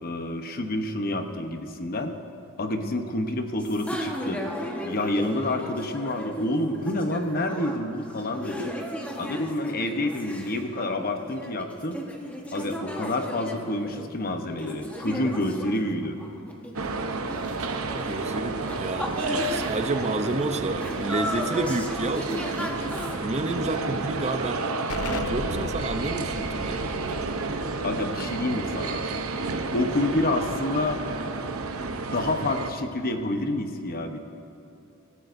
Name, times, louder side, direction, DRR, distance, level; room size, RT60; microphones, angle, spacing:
voice 1, 0.0-2.2 2.6-4.4 4.8-8.7 9.2-12.0 12.5-16.2 27.8-29.0 29.7-31.0 31.9-34.2, left 1 dB, 45° left, 6 dB, 1.0 m, -28 dB
sound 1, 3.6-23.2, equal, 5° left, 1.3 m, -36 dB
sound 2, 16.7-32.7, right 3 dB, 70° right, 0.8 m, -31 dB
voice 2, 17.6-19.2 19.5-22.8 23.2-24.7 25.1-26.8, right 2 dB, 30° right, 7 dB, 0.6 m, -30 dB
Explosion, 24.9-30.3, left 3 dB, 75° left, 0.7 m, -38 dB
26.5 x 14.5 x 2.6 m, 2.7 s
head